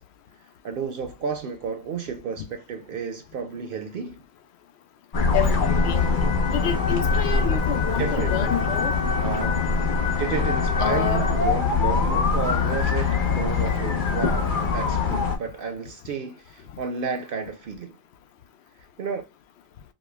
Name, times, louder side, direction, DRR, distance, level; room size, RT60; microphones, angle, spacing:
voice 1, 0.6-4.2 8.0-8.6 9.2-9.7 10.2-18.0 19.0-19.2, right 5 dB, 65° right, 0.7 m, -32 dB
sound 1, 5.1-15.4, left 4 dB, 55° left, 1.0 m, -23 dB
voice 2, 5.3-6.0 6.5-8.9 10.8-11.3, left 9 dB, 90° left, 0.9 m, -28 dB
5.0 x 2.2 x 2.3 m
omnidirectional pair, 1.1 m